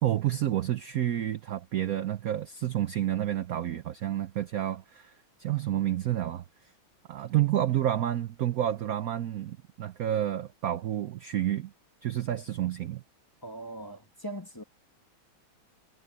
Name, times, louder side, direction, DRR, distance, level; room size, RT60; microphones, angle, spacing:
voice 1, 0.0-5.1 5.4-6.4 7.1-11.7 12.0-13.0, right 12 dB, 65° right, 0.9 m, -29 dB
voice 2, 13.4-14.6, right 1 dB, 10° left, 1.6 m, -40 dB
omnidirectional pair, 2.2 m